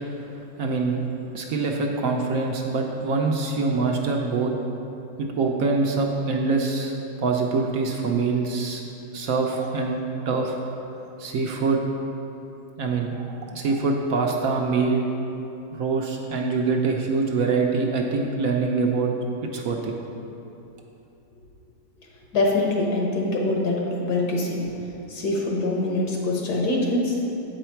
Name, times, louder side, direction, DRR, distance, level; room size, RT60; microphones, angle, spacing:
voice 1, 0.6-1.0 1.3-4.5 5.2-8.8 9.1-10.0 10.3-10.6 11.2-11.8 12.8-15.0 15.7-19.1 19.5-19.9, right 4 dB, 70° right, 1 dB, 0.9 m, -24 dB
voice 2, 22.3-24.7 25.1-27.2, left 2 dB, 75° left, -1 dB, 1.6 m, -24 dB
7.9 x 4.9 x 4.4 m, 2.9 s
omnidirectional pair, 1.7 m